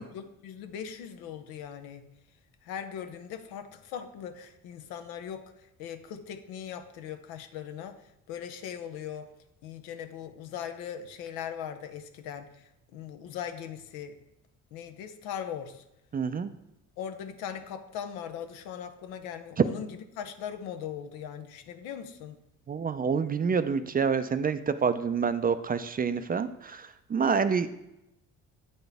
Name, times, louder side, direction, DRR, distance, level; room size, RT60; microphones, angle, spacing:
voice 1, 0.0-2.1 2.6-9.3 9.6-14.2 14.7-15.8 17.0-22.4, left 8 dB, 85° left, 7 dB, 0.7 m, -40 dB
voice 2, 16.1-16.5 22.7-27.7, right 6 dB, 25° right, 11 dB, 0.4 m, -27 dB
8.4 x 4.2 x 3.4 m, 0.87 s
supercardioid pair, 70°, 35 cm